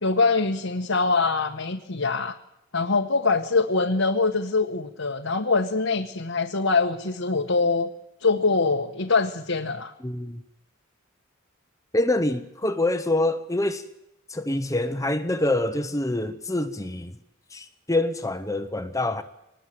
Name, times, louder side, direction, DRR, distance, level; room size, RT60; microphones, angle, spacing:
voice 1, 0.0-2.3 2.7-7.9 8.2-9.9, left 4 dB, 75° left, 1.6 m, -23 dB
voice 2, 10.0-10.4 11.9-13.8 14.3-17.1 17.5-19.2, left 1 dB, 15° left, 1.1 m, -26 dB
24.0 x 20.0 x 7.8 m
head